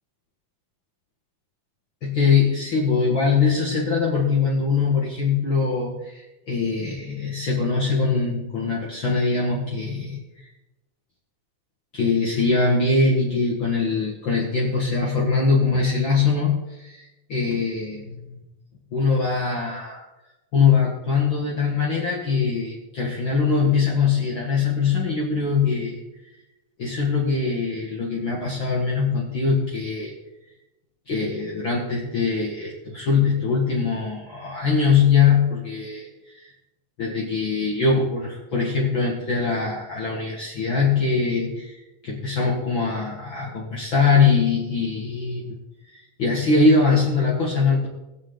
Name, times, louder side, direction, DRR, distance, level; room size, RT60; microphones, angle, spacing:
voice 1, 2.0-10.5 11.9-18.4 18.9-20.0 20.5-26.0 26.8-30.1 31.1-36.1 36.3-36.5 37.0-41.8 42.0-45.6 45.9-47.9, left 4 dB, 45° left, -4 dB, 2.1 m, -22 dB
21.0 x 7.4 x 3.9 m, 1.0 s
omnidirectional pair, 3.4 m